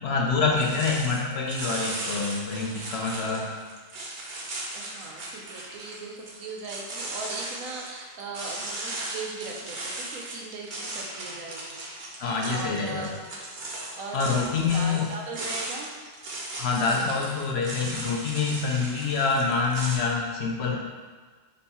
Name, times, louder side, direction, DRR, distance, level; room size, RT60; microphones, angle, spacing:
voice 1, 0.0-3.5 12.2-13.1 14.1-15.1 16.6-20.8, left 4 dB, 65° left, -1 dB, 0.7 m, -26 dB
sound 1, 0.6-20.0, right 2 dB, 50° right, 0.7 m, -37 dB
voice 2, 4.7-11.8 12.4-13.1 13.9-15.9 16.9-17.5, right 3 dB, 90° right, 0 dB, 1.1 m, -39 dB
5.3 x 2.3 x 4.1 m, 1.4 s
omnidirectional pair, 1.4 m